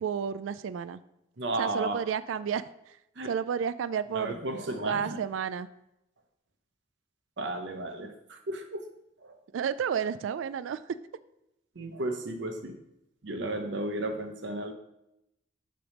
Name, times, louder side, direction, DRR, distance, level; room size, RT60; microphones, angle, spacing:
voice 1, 0.0-1.0 1.6-3.0 3.3-4.3 4.9-5.7 9.5-10.8, right 7 dB, 90° right, 15 dB, 0.3 m, -31 dB
voice 2, 1.4-2.0 3.2-3.3 4.1-5.2 7.4-8.9 9.2-9.4 11.8-12.8 13.2-14.7, right 1 dB, 65° right, 5 dB, 0.8 m, -34 dB
7.7 x 3.4 x 6.4 m, 0.85 s
head